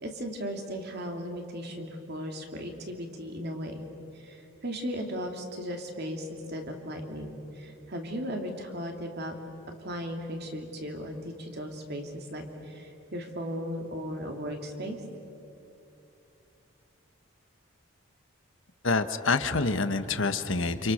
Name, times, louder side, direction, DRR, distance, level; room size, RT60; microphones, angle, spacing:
voice 1, 0.0-3.7 4.2-9.4 9.8-15.0, equal, 50° right, 3 dB, 3.0 m, -36 dB
voice 2, 18.8-20.9, left 3 dB, 60° left, 9 dB, 1.3 m, -27 dB
29.0 x 27.5 x 6.6 m, 2.7 s
head